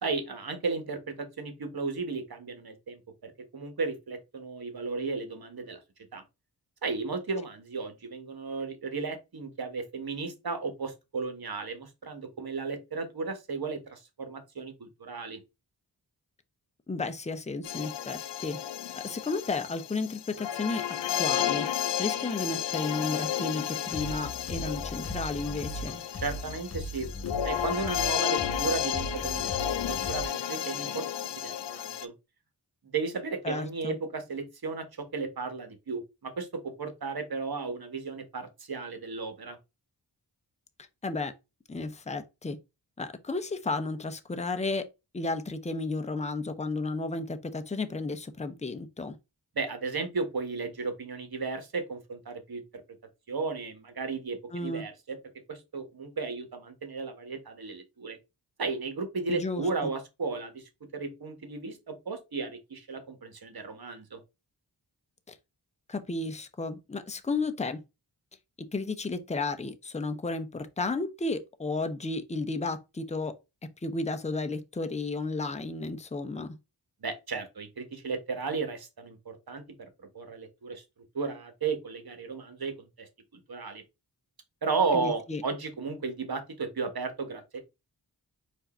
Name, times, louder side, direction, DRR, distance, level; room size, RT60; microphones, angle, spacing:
voice 1, 0.0-5.8 6.1-6.2 6.8-15.4 26.2-27.1 27.4-32.1 32.9-39.6 49.5-52.6 53.3-55.2 55.5-58.2 58.6-64.2 77.0-79.9 80.1-80.8 81.1-83.1 83.5-83.8 84.6-87.6, right 4 dB, 60° right, 1.2 m, -34 dB
voice 2, 16.9-18.6 19.0-21.7 22.0-26.0 33.4-34.0 41.0-41.3 41.7-42.6 43.0-44.9 45.1-49.2 54.5-54.8 59.3-59.9 65.3-65.4 65.9-67.8 68.7-73.3 73.8-76.6 84.9-85.4, left 3 dB, 15° left, 0.6 m, -33 dB
sound 1, 17.6-32.1, left 10 dB, 85° left, 0.5 m, -32 dB
sound 2, 23.9-30.2, equal, 35° left, 1.2 m, -39 dB
4.6 x 2.7 x 4.1 m
wide cardioid pair, 65°, 42 cm